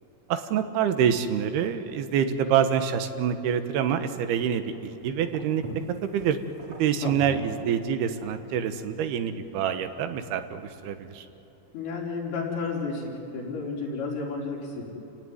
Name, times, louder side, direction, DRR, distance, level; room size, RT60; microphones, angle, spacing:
voice 1, 0.3-5.6 6.0-6.4 6.7-11.3, right 8 dB, 90° right, 9 dB, 3.3 m, -26 dB
sound 1, 4.2-11.4, right 3 dB, 40° right, 2.9 m, -47 dB
voice 2, 7.0-7.4 11.7-14.9, left 4 dB, 80° left, -3 dB, 6.4 m, -32 dB
29.5 x 17.0 x 9.5 m, 2.9 s
omnidirectional pair, 4.4 m